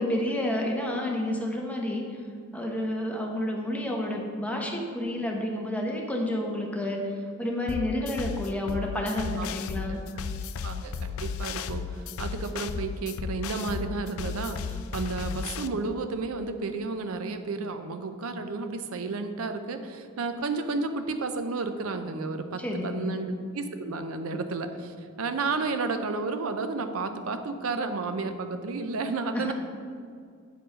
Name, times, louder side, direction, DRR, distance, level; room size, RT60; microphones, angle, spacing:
voice 1, 0.0-2.1 2.5-7.1 7.4-10.0 22.6-23.2 29.3-29.5, left 1 dB, 5° left, 0 dB, 0.9 m, -30 dB
sound 1, 7.7-15.7, left 6 dB, 85° left, 0.4 m, -34 dB
voice 2, 9.8-10.2 10.6-29.5, right 3 dB, 85° right, 8 dB, 0.6 m, -32 dB
9.1 x 4.6 x 5.0 m, 2.2 s
head